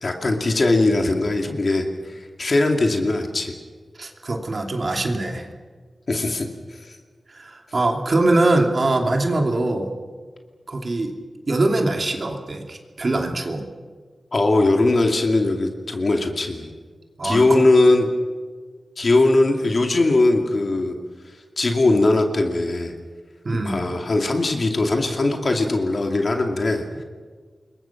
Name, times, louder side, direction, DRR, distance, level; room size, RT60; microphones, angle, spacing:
voice 1, 0.0-3.5 6.1-6.5 14.3-16.7 17.2-18.1 19.0-21.0 21.6-22.9 23.6-27.0, left 2 dB, 45° left, 3 dB, 2.5 m, -20 dB
voice 2, 4.0-5.5 7.3-9.9 10.7-11.1 11.5-13.6 17.2-17.6 23.4-23.8, right 2 dB, 45° right, 3 dB, 2.7 m, -22 dB
27.5 x 22.5 x 6.0 m, 1.5 s
wide cardioid pair, 120°, 0 cm